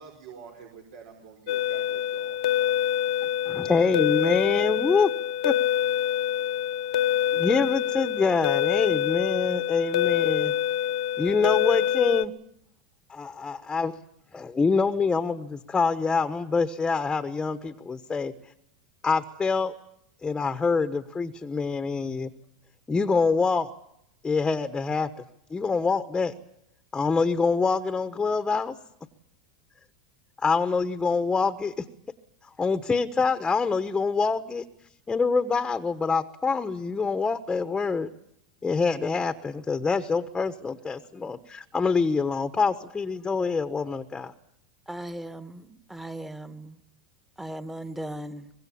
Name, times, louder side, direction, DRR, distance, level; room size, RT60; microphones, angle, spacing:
voice 1, 0.0-2.4, right 6 dB, 70° right, 3 dB, 5.2 m, -47 dB
sound 1, 1.5-12.2, left 11 dB, 80° left, 1.0 m, -26 dB
voice 2, 3.5-5.1 5.4-5.5 7.3-10.5 11.2-12.3 13.1-13.9 14.3-18.3 19.0-19.7 20.2-22.3 22.9-23.7 24.2-25.1 25.5-26.3 26.9-28.8 30.4-31.8 32.6-34.6 35.1-38.1 38.6-44.3, left 4 dB, 15° left, 9 dB, 1.2 m, -25 dB
voice 3, 44.9-46.8 47.4-48.5, right 1 dB, 5° right, 11 dB, 1.5 m, -38 dB
24.0 x 21.5 x 8.6 m, 0.77 s
supercardioid pair, 120°, 4 cm